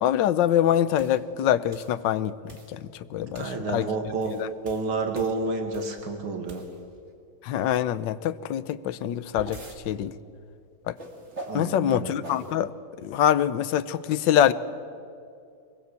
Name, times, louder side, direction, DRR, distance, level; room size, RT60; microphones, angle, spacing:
voice 1, 0.0-3.9 4.3-4.5 7.4-9.6 9.9-10.1 10.9-11.0 11.5-12.7 13.0-14.5, left 10 dB, 70° left, 14 dB, 1.4 m, -24 dB
sound 1, 1.0-1.2 1.7-2.0 2.5-2.8 3.3-3.6 4.1-6.0 6.4-7.0 8.9-9.8 11.0-11.7 12.2-12.5, right 2 dB, 35° right, 2.7 m, -43 dB
voice 2, 3.4-4.3 4.6-6.6 11.5-12.1, right 3 dB, 85° right, 5 dB, 2.8 m, -29 dB
23.5 x 20.5 x 8.3 m, 2.4 s
omnidirectional pair, 2.2 m